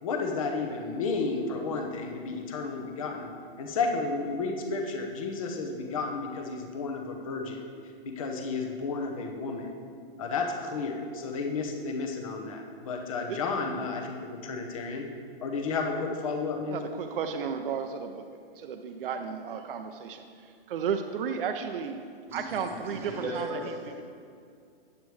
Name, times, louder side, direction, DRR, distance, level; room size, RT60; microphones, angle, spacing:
voice 1, 0.0-3.3 3.6-7.6 8.0-9.7 10.2-15.1 15.4-16.9, left 4 dB, 35° left, 3 dB, 0.7 m, -32 dB
voice 2, 16.7-18.3 18.6-20.3 20.7-22.0 22.3-23.0 23.3-23.5, right 7 dB, 65° right, 6 dB, 0.5 m, -33 dB
voice 3, 22.3-24.0, right 1 dB, 10° right, -5 dB, 0.9 m, -37 dB
8.3 x 8.3 x 3.1 m, 2.3 s
hypercardioid pair, 175°, 30 cm